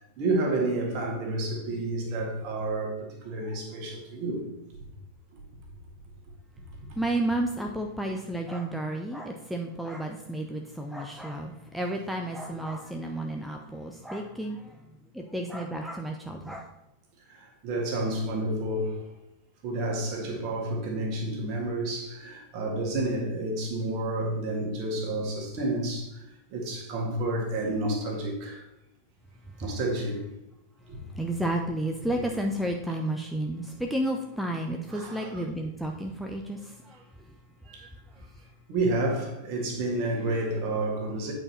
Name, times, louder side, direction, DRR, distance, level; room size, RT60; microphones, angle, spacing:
voice 1, 0.2-4.4 5.3-5.4 17.3-19.0 19.6-26.2 26.5-28.6 29.6-30.2 30.9-31.0 34.9-35.4 37.7-37.9 38.7-41.3, right 2 dB, 40° right, 1.9 m, -30 dB
voice 2, 7.0-14.6 15.1-16.7 31.2-37.0, right 1 dB, ahead, 0.6 m, -32 dB
8.7 x 4.8 x 4.3 m
figure-of-eight pair, 90°, 0 cm